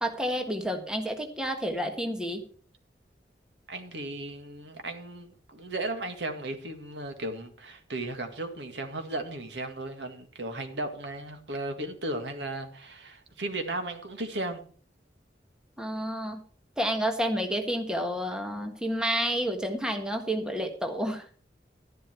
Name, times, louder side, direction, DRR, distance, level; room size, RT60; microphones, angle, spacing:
voice 1, 0.0-2.4 15.8-16.4 16.8-21.2, equal, 5° right, 4 dB, 1.6 m, -30 dB
voice 2, 3.7-14.6, right 2 dB, 80° right, 6 dB, 2.0 m, -35 dB
12.0 x 11.0 x 4.5 m, 0.43 s
head